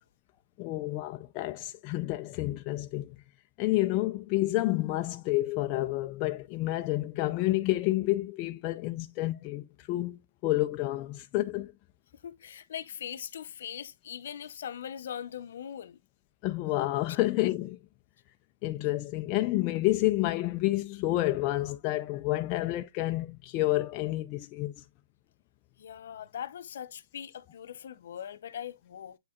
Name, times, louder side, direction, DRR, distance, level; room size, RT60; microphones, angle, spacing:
voice 1, 0.6-3.1 3.6-11.7 16.4-17.8 18.6-24.8, left 17 dB, 25° left, 0.3 m, -29 dB
voice 2, 12.2-16.0 25.8-29.2, left 9 dB, 60° left, 0.7 m, -41 dB
8.2 x 4.9 x 2.4 m
hypercardioid pair, 155°, 0 cm